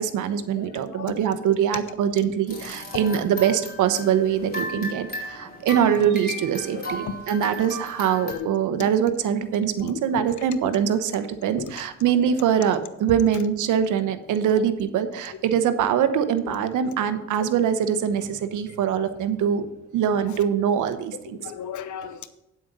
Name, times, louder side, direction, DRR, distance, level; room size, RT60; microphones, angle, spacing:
voice 1, 0.0-19.7 19.9-21.4, right 8 dB, 80° right, 1.0 m, -23 dB
voice 2, 0.5-1.1 2.9-3.2 6.0-6.1 6.7-7.7 8.2-8.5 9.8-10.3 10.8-10.9 11.5-11.7 12.6-12.7 15.2-15.4 16.8-16.9 19.0-19.1 20.3-20.4 21.4-22.3, left 8 dB, 75° left, 1.0 m, -36 dB
sound 1, 2.5-8.4, left 1 dB, 30° left, 4.1 m, -36 dB
9.1 x 7.8 x 5.4 m
cardioid pair, 90°, 30 cm